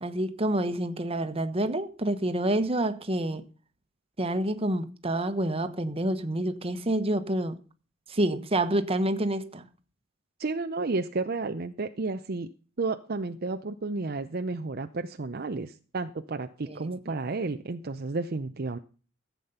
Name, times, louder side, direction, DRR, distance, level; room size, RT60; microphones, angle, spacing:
voice 1, 0.0-3.4 4.2-7.5 8.1-9.7 16.6-17.2, right 1 dB, 30° right, 1.2 m, -28 dB
voice 2, 10.4-12.5 12.8-18.8, right 3 dB, 50° right, 0.7 m, -32 dB
14.5 x 8.4 x 5.7 m
head